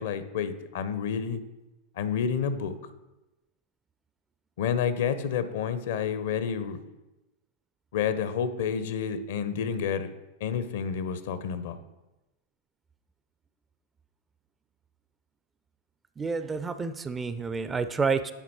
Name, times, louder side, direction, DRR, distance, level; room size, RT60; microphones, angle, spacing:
voice 1, 0.0-1.4 2.0-2.8 4.6-6.8 7.9-10.1 10.4-11.8, left 7 dB, 55° left, 12 dB, 0.5 m, -29 dB
voice 2, 16.2-18.3, right 5 dB, 15° right, 12 dB, 0.3 m, -29 dB
9.1 x 4.2 x 4.2 m, 1.0 s
figure-of-eight pair, 90°, 0 cm